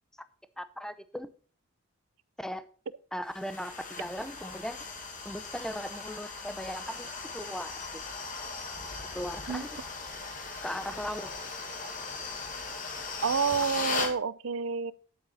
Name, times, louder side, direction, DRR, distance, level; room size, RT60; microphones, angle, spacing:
voice 1, 0.6-1.3 2.4-2.7 3.1-4.8 5.2-7.1 7.3-7.7 8.7-8.8 9.1-9.8 10.6-11.3, equal, 5° left, 0.6 m, -38 dB
sound 1, 3.3-14.2, left 4 dB, 35° left, 1.8 m, -38 dB
voice 2, 13.2-14.9, right 5 dB, 70° right, 0.6 m, -29 dB
10.0 x 8.3 x 4.2 m
head